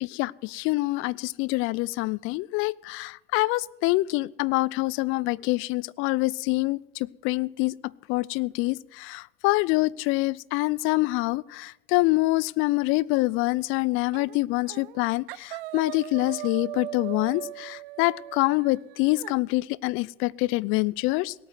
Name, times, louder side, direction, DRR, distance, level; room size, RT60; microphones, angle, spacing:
voice 1, 0.0-7.8 8.1-21.3, left 21 dB, 45° left, 0.5 m, -26 dB
sound 1, 14.1-14.4 14.7-15.0 15.3-19.4, right 16 dB, 70° right, 0.6 m, -39 dB
18.5 x 8.7 x 8.1 m
hypercardioid pair, 95°, 29 cm